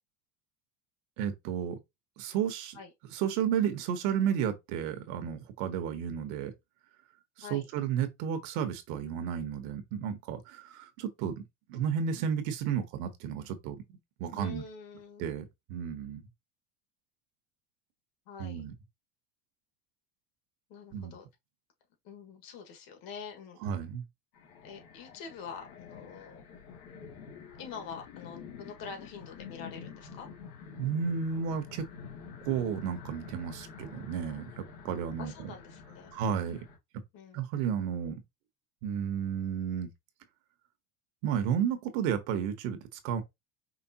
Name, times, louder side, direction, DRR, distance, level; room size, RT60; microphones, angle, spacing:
voice 1, 1.2-1.8 2.2-2.8 3.1-6.5 7.4-11.4 11.7-13.8 14.2-14.6 15.2-16.2 18.4-18.7 20.9-21.2 23.6-24.0 30.8-31.9 32.4-35.5 36.1-36.6 37.3-38.2 38.8-39.9 41.2-42.8 43.0-43.2, right 8 dB, 65° right, 1.2 m, -32 dB
voice 2, 14.4-15.3 18.3-18.6 20.7-21.3 22.0-23.6 24.6-26.4 27.6-30.3 35.2-36.1 37.1-37.4, left 6 dB, 55° left, 1.8 m, -45 dB
sound 1, 24.3-36.8, left 6 dB, 90° left, 2.4 m, -48 dB
5.1 x 3.2 x 2.9 m
cardioid pair, 160°, 43 cm